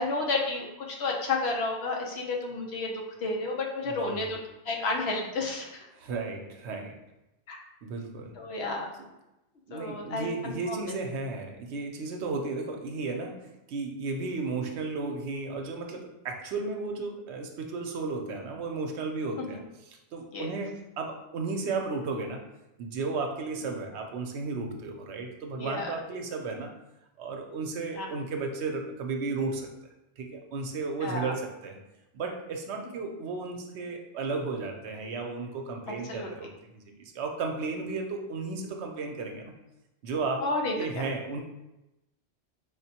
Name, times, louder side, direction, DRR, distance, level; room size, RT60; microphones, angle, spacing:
voice 1, 0.0-4.4 4.6-5.8 7.5-7.6 8.4-8.9 9.7-10.9 19.4-19.6 20.3-20.5 25.6-25.9 27.9-28.1 31.0-31.3 36.1-36.3 40.4-41.1, left 3 dB, 70° left, 0 dB, 1.0 m, -31 dB
voice 2, 3.8-4.3 5.9-7.0 7.8-8.4 9.7-19.6 19.9-22.5 22.8-26.7 27.2-29.7 30.2-31.8 32.1-39.5 40.0-40.5 40.8-41.4, right 3 dB, 80° right, 3 dB, 0.9 m, -34 dB
5.0 x 2.1 x 2.8 m, 0.94 s
omnidirectional pair, 1.1 m